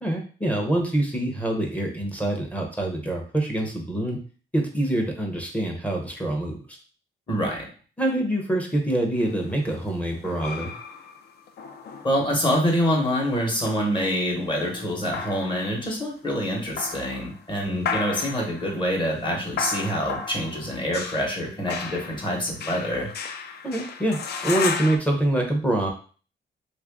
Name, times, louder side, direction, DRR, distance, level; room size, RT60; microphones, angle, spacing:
voice 1, 0.0-4.2 4.5-6.8 8.0-10.7 17.6-17.8 23.6-25.9, right 1 dB, 5° left, 0 dB, 0.6 m, -25 dB
voice 2, 7.3-7.7 12.0-23.1, equal, 25° left, -1 dB, 1.0 m, -26 dB
sound 1, 9.2-12.7 13.3-15.9 16.5-17.4 17.8-25.0, left 5 dB, 60° left, 0.4 m, -34 dB
3.1 x 2.5 x 3.5 m, 0.40 s
wide cardioid pair, 155°, 19 cm